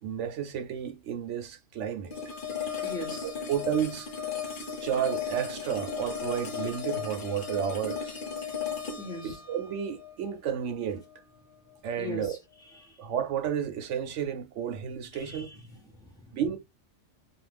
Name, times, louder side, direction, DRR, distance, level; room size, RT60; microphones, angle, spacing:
voice 1, 0.0-2.2 3.5-4.1 4.8-8.2 9.2-11.0 11.8-12.4 13.0-15.5 16.3-16.6, right 8 dB, 75° right, 1.0 m, -31 dB
sound 1, 2.1-11.1, left 6 dB, 50° left, 0.9 m, -36 dB
voice 2, 2.8-3.3 9.0-9.4 12.0-12.4 12.7-13.0 15.1-15.6 15.8-16.3, left 1 dB, 5° left, 0.9 m, -40 dB
2.5 x 2.4 x 3.3 m
omnidirectional pair, 1.2 m